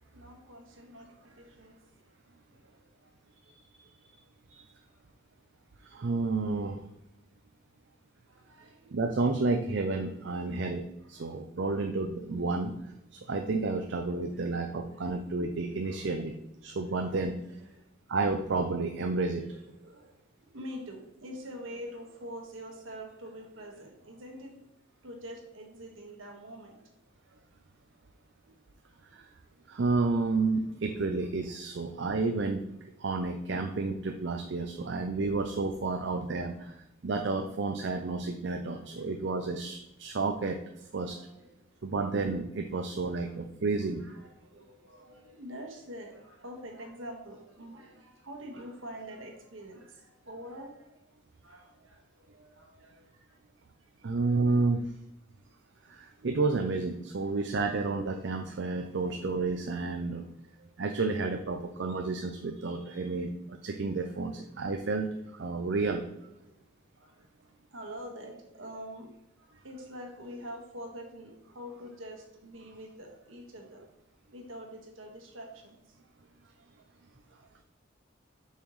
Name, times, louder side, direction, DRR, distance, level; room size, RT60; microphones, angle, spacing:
voice 1, 0.1-1.8 3.0-3.1 8.3-8.9 10.3-10.7 11.1-11.8 14.0-15.5 15.8-16.1 16.8-17.8 19.4-20.1 20.5-24.5 25.0-26.8 30.5-30.6 30.9-31.0 32.5-32.6 34.3-34.4 35.0-35.4 36.4-36.7 37.9-38.0 38.7-39.0 41.0-41.5 43.0-43.4 44.0-50.8 51.4-52.0 52.3-53.2 54.3-54.6 57.0-57.1 58.7-59.2 59.9-60.7 62.8-63.0 64.1-64.4 67.0-67.2 67.7-69.1 69.5-73.8 74.3-75.8 77.3-77.4, equal, 75° right, 1 dB, 1.6 m, -46 dB
voice 2, 5.8-6.8 8.9-12.7 13.1-16.3 16.6-17.4 18.1-19.4 29.1-29.3 29.7-32.6 33.0-36.7 37.0-40.6 40.9-41.2 41.8-44.0 54.0-54.8 55.9-60.2 60.8-66.0, right 3 dB, 60° right, 4 dB, 0.5 m, -31 dB
7.1 x 5.6 x 3.1 m, 0.87 s
head